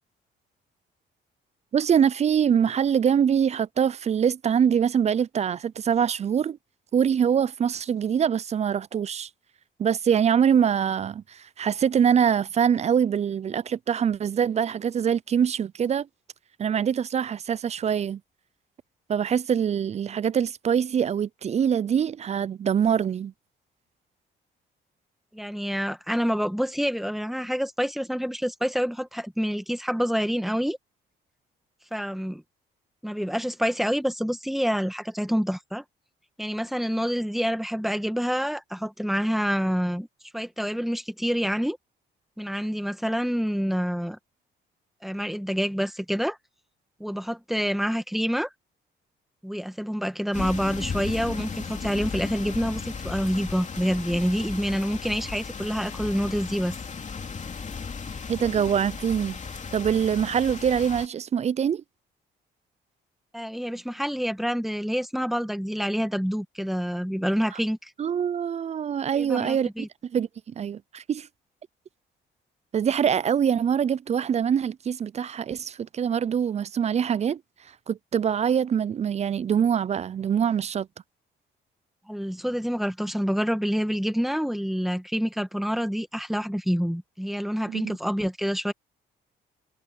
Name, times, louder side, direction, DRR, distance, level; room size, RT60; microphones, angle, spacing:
voice 1, 1.7-6.6 6.9-9.3 9.8-16.1 16.6-18.2 19.1-23.3 58.3-59.4 59.7-61.8 68.0-69.7 70.1-71.3 72.7-77.4 77.9-80.9 87.7-88.0, right 8 dB, 35° right, 0.3 m, -24 dB
voice 2, 25.3-30.8 31.9-32.4 33.0-35.8 36.4-40.1 40.3-41.8 42.4-44.2 45.0-46.4 47.0-48.5 49.4-56.8 63.3-67.9 69.1-69.9 82.1-88.7, equal, ahead, 1.8 m, -27 dB
sound 1, 50.3-61.1, left 5 dB, 35° left, 2.7 m, -35 dB
cardioid pair, 90°, 20 cm